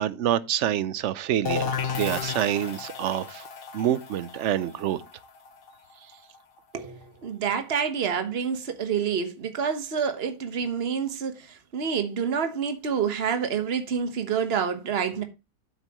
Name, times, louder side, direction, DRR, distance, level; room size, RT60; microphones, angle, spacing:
voice 1, 0.0-3.5 3.7-5.0, right 11 dB, 60° right, 0.9 m, -27 dB
sound 1, 1.4-7.0, left 6 dB, 45° left, 1.0 m, -34 dB
voice 2, 6.7-15.2, right 7 dB, 40° right, 1.4 m, -28 dB
10.0 x 8.3 x 3.0 m
omnidirectional pair, 1.6 m